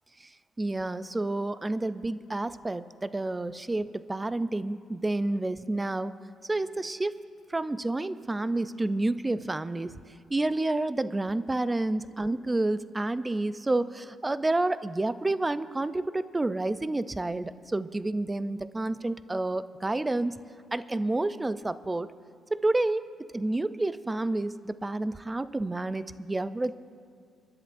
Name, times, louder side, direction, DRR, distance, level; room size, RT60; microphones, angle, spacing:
voice 1, 0.6-6.1 6.5-7.2 7.5-9.9 10.3-20.4 20.7-22.1 22.5-23.1 23.3-26.7, right 2 dB, 15° right, 14 dB, 0.4 m, -29 dB
30.0 x 10.5 x 2.6 m, 2.2 s
cardioid pair, 90°, 0 cm